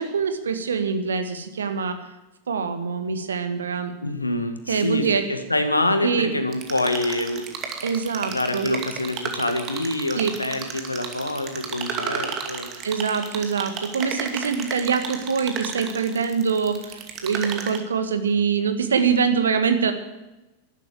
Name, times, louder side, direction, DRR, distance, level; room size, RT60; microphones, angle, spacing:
voice 1, 0.0-2.0 2.5-3.9 4.7-5.2 6.0-6.3 7.8-8.7 10.1-10.3 12.8-19.9, right 6 dB, 70° right, 8 dB, 1.7 m, -24 dB
voice 2, 4.0-7.5 8.2-12.7, left 2 dB, 85° left, 7 dB, 1.7 m, -26 dB
sound 1, 6.5-17.8, right 6 dB, 35° right, 2.4 m, -33 dB
12.0 x 12.0 x 9.3 m, 1.0 s
figure-of-eight pair, 90°, 0 cm